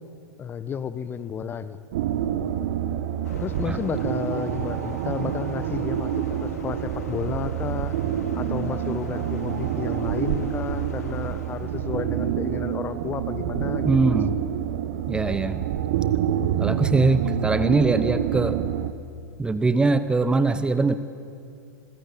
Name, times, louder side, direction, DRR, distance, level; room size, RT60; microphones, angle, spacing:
voice 1, 0.4-1.8 3.4-6.1 6.4-7.9 8.3-14.2, left 7 dB, 20° left, 14 dB, 1.0 m, -32 dB
sound 1, 1.9-18.9, right 10 dB, 50° right, 1.2 m, -27 dB
sound 2, 3.2-13.4, left 7 dB, 60° left, 2.3 m, -45 dB
voice 2, 13.8-14.4 15.1-15.6 16.6-18.6 19.4-21.0, right 3 dB, 10° right, 12 dB, 0.8 m, -22 dB
26.5 x 20.5 x 8.9 m, 2.4 s
figure-of-eight pair, 95°, 10 cm